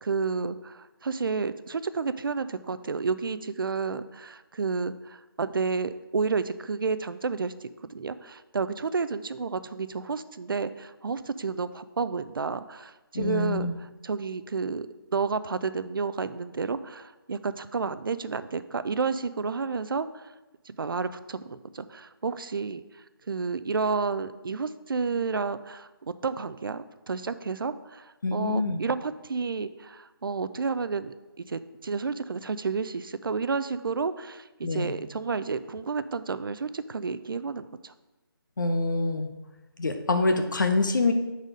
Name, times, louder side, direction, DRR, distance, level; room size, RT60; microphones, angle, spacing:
voice 1, 0.0-20.3 20.7-22.8 23.3-37.9, right 4 dB, 65° right, 13 dB, 0.4 m, -31 dB
voice 2, 13.1-13.7 28.2-28.8 34.6-34.9 38.6-39.3 39.8-41.1, left 3 dB, 55° left, 7 dB, 0.7 m, -25 dB
6.3 x 4.1 x 5.1 m, 1.1 s
hypercardioid pair, 175°, 13 cm